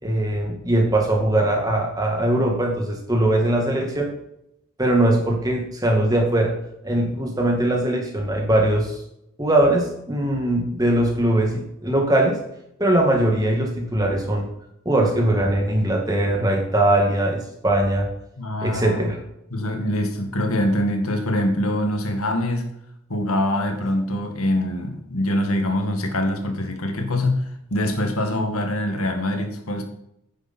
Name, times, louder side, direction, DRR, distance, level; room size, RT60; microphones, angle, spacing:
voice 1, 0.0-4.1 4.8-6.5 6.8-9.0 9.4-12.4 12.8-14.5 14.9-18.1 18.6-19.2, right 1 dB, 15° right, 1 dB, 2.2 m, -21 dB
voice 2, 18.4-19.0 19.5-22.7 23.1-27.4 27.7-29.8, left 1 dB, 85° left, 4 dB, 2.1 m, -24 dB
10.5 x 9.7 x 4.4 m, 0.80 s
head